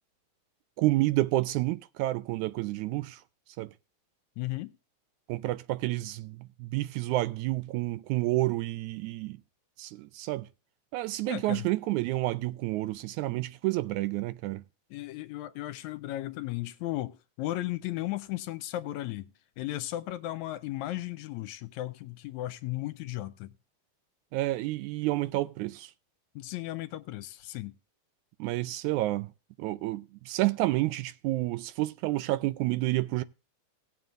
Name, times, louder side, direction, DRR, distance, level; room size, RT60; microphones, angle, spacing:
voice 1, 0.8-3.2 3.6-3.7 5.3-9.4 9.8-10.5 10.9-14.6 24.3-25.9 28.4-29.3 29.6-33.2, right 18 dB, 80° right, 2.0 m, -29 dB
voice 2, 4.4-4.7 11.3-11.7 14.9-23.5 26.4-27.8, left 15 dB, 80° left, 1.9 m, -35 dB
18.5 x 7.4 x 2.5 m
omnidirectional pair, 3.4 m